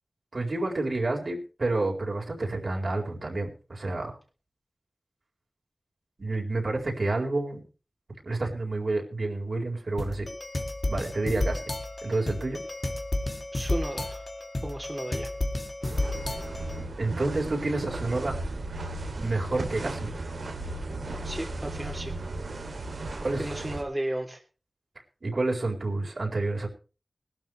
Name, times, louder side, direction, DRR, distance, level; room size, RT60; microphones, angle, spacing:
voice 1, 0.3-4.2 6.2-7.6 8.2-10.3 10.9-11.6 12.0-12.6 17.0-18.3 19.2-20.1 23.2-23.4 25.2-26.7, right 2 dB, 65° right, 1 dB, 4.5 m, -29 dB
sound 1, 10.0-16.8, left 1 dB, 45° left, 2.2 m, -32 dB
voice 2, 13.5-14.2 14.6-15.3 21.2-22.1 23.1-24.4, right 1 dB, 20° right, 1 dB, 2.9 m, -34 dB
sound 2, 15.8-23.8, right 2 dB, 85° right, 2.7 m, -35 dB
20.0 x 12.5 x 3.2 m, 0.35 s
wide cardioid pair, 55°, 0 cm